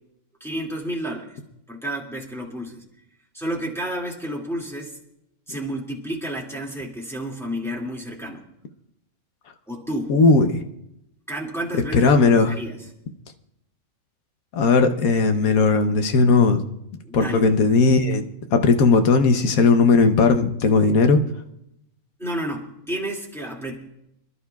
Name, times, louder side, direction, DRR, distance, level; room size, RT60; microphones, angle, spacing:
voice 1, 0.4-1.4 1.7-2.8 3.3-5.0 5.5-8.4 9.7-10.1 11.3-12.8 17.0-17.4 22.2-23.8, right 1 dB, ahead, -3 dB, 2.1 m, -31 dB
voice 2, 10.1-10.6 11.9-12.6 14.5-16.6 17.1-18.2 18.5-21.2, left 4 dB, 75° left, 7 dB, 1.3 m, -17 dB
27.5 x 11.5 x 2.3 m, 0.80 s
omnidirectional pair, 1.5 m